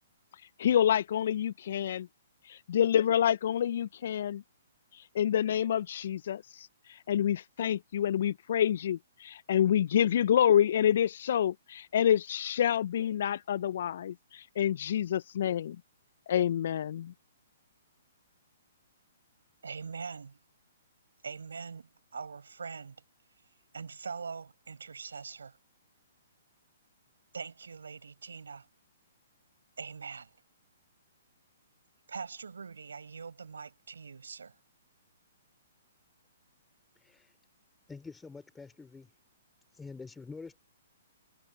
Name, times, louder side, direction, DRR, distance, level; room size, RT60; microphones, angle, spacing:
voice 1, 0.6-2.1 2.4-4.4 4.9-15.8 16.3-17.1, left 10 dB, 60° left, 0.3 m, -28 dB
voice 2, 19.6-20.4 21.2-23.0 23.7-25.6 27.3-28.7 29.8-30.3 32.1-34.6, right 5 dB, 80° right, 5.3 m, -42 dB
voice 3, 37.0-37.4 37.9-39.1 39.7-40.6, left 4 dB, 10° left, 2.7 m, -46 dB
hypercardioid pair, 130°, 0 cm